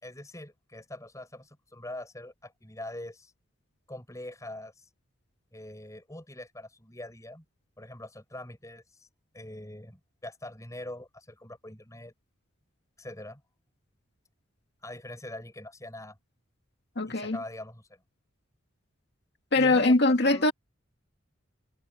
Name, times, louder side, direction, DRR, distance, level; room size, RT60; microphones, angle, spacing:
voice 1, 0.0-3.3 3.9-4.8 5.5-7.4 7.8-9.1 9.3-12.1 13.0-13.4 14.8-16.2 17.0-18.0 19.5-20.5, left 1 dB, 15° left, 5.8 m, -43 dB
voice 2, 17.0-17.4 19.5-20.5, left 2 dB, 55° left, 2.0 m, -22 dB
head